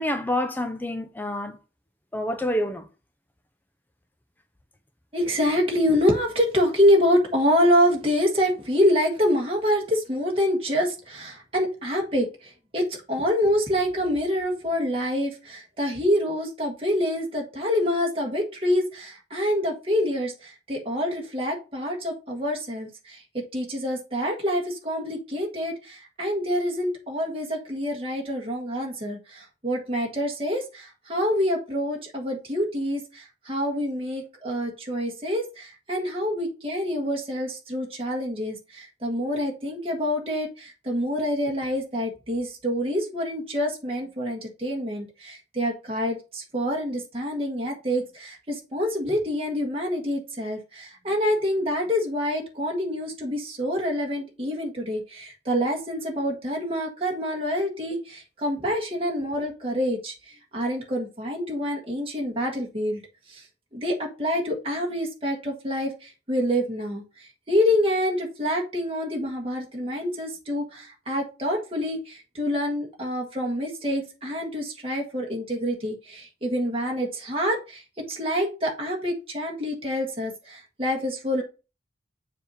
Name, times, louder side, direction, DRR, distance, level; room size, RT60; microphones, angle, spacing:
voice 1, 0.0-1.6 2.1-2.8, left 1 dB, 10° left, 0.5 m, -27 dB
voice 2, 5.1-63.0 63.3-63.4 63.7-81.4, equal, 30° right, 1.6 m, -26 dB
7.1 x 2.8 x 5.3 m
head